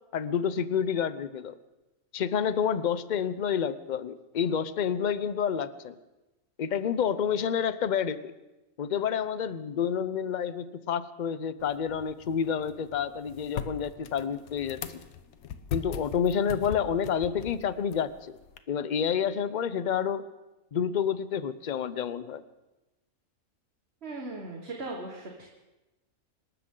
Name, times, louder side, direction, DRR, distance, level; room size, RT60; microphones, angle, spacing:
voice 1, 0.1-1.6 2.1-6.0 6.6-8.3 8.8-14.8 15.7-18.3 18.7-20.2 20.7-22.4, left 7 dB, 50° left, 14 dB, 0.6 m, -29 dB
sound 1, 11.6-18.6, left 8 dB, 85° left, 1.3 m, -41 dB
voice 2, 24.0-25.5, right 2 dB, 50° right, 0 dB, 1.9 m, -38 dB
26.0 x 13.0 x 3.8 m, 1.0 s
omnidirectional pair, 1.5 m